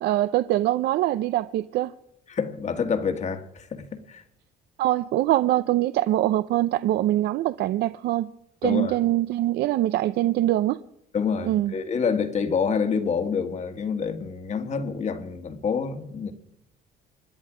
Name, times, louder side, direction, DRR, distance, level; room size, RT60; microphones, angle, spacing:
voice 1, 0.0-1.9 4.8-8.3 8.6-10.8 11.4-11.7, right 14 dB, 75° right, 0.6 m, -23 dB
voice 2, 2.3-4.2 8.6-8.9 11.1-16.3, left 6 dB, 45° left, 1.8 m, -27 dB
26.0 x 10.5 x 5.0 m
cardioid pair, 110°, 17 cm